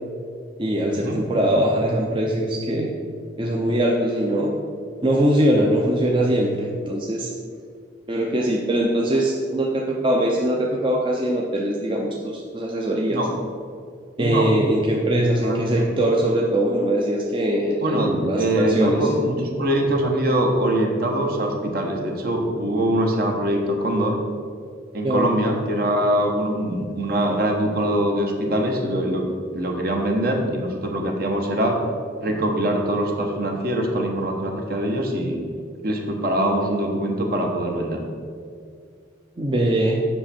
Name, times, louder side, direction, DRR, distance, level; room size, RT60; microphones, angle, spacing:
voice 1, 0.6-2.9 3.4-4.5 5.0-7.3 8.1-13.2 14.2-19.1 25.0-25.3 39.4-40.0, right 1 dB, 25° right, -1 dB, 0.6 m, -22 dB
voice 2, 14.2-14.5 15.4-15.8 17.8-24.2 24.9-29.3 29.5-31.8 32.2-35.4 35.8-38.0, right 1 dB, 55° right, 2 dB, 1.1 m, -23 dB
7.5 x 6.0 x 4.4 m, 2.2 s
head